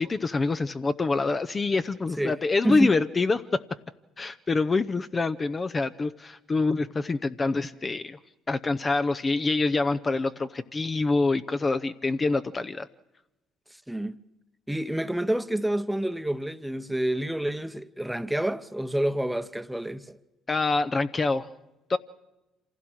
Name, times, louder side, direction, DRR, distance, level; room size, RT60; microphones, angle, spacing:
voice 1, 0.0-3.6 4.2-8.2 8.5-12.9 20.5-21.5 21.9-22.0, left 3 dB, 30° left, 0.7 m, -26 dB
voice 2, 2.6-3.0 13.9-14.2 14.7-20.2, right 1 dB, 5° right, 0.9 m, -28 dB
26.5 x 16.0 x 6.3 m
hypercardioid pair, 65°, 0 cm